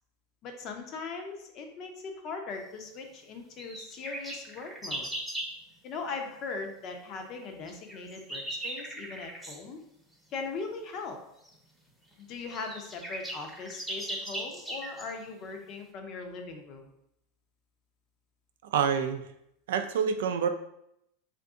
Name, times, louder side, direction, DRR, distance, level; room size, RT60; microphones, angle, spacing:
voice 1, 0.4-5.1 5.8-9.8 10.3-11.2 12.2-16.9, left 4 dB, 45° left, 4 dB, 0.6 m, -39 dB
sound 1, 3.6-5.6 7.7-9.6 11.5-11.6 12.1-12.2 12.4-15.1, right 1 dB, ahead, 0.7 m, -38 dB
voice 2, 18.7-19.2 19.7-20.5, right 7 dB, 80° right, 7 dB, 0.3 m, -27 dB
2.6 x 2.5 x 3.6 m, 0.78 s
supercardioid pair, 120°, 0 cm